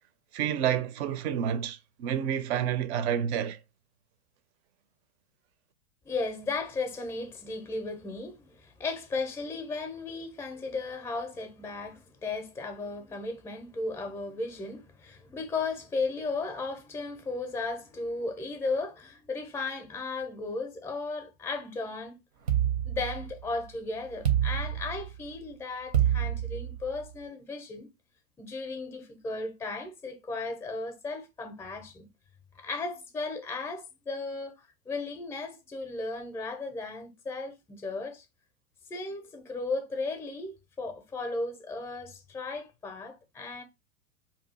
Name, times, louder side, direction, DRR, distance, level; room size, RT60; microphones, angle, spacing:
voice 1, 0.3-3.6, right 9 dB, 50° right, 0.5 m, -29 dB
voice 2, 6.0-22.2 22.8-27.9 28.4-32.1 32.5-38.3 38.9-43.6, left 3 dB, 5° left, 0.5 m, -35 dB
sound 1, 22.5-23.6 24.2-25.3 25.9-27.1, right 10 dB, 85° right, 0.8 m, -27 dB
2.7 x 2.4 x 4.0 m
hypercardioid pair, 100°, 43 cm